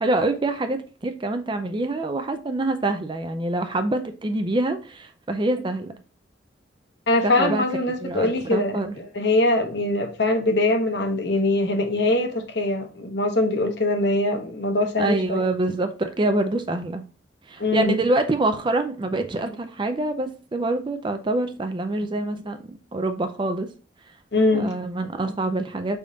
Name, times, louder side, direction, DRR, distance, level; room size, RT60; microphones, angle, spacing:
voice 1, 0.0-5.9 7.2-7.6 8.0-8.9 15.0-17.0 17.5-23.7 24.5-26.0, right 2 dB, 25° right, 0.4 m, -25 dB
voice 2, 7.1-15.5 17.6-17.9 24.3-24.8, left 2 dB, 60° left, 0.8 m, -22 dB
5.0 x 3.4 x 2.7 m
head